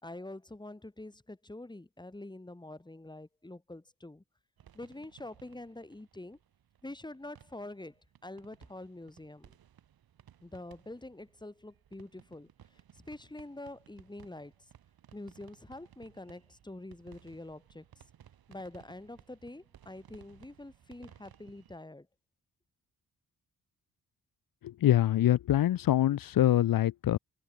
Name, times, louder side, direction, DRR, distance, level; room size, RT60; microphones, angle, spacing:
voice 1, 0.0-4.2 4.7-6.4 6.8-9.6 10.4-12.5 12.9-14.5 15.1-17.8 18.5-22.1, left 2 dB, 10° left, 5.5 m, -46 dB
sound 1, 4.6-21.8, right 10 dB, 80° right, 7.9 m, -60 dB
voice 2, 24.6-27.2, left 12 dB, 70° left, 0.8 m, -25 dB
cardioid pair, 110°, 36 cm